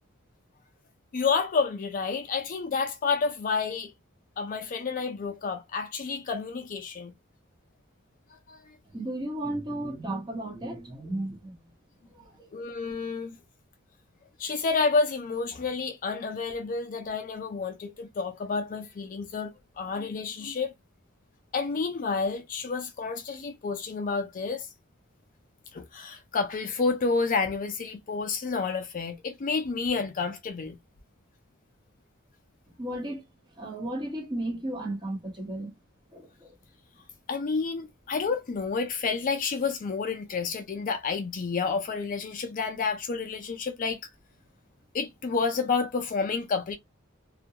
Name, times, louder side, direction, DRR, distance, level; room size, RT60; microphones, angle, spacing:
voice 1, 1.1-3.9 4.4-7.1 8.5-8.6 12.5-13.4 14.4-19.5 19.8-20.7 21.5-24.7 25.7-30.8 37.3-44.0 44.9-46.8, left 4 dB, 40° left, 0.4 m, -29 dB
voice 2, 8.9-11.6 12.1-12.5 32.8-33.2 33.6-35.7 36.1-36.6, right 1 dB, 20° right, 0.9 m, -34 dB
2.3 x 2.2 x 2.7 m
head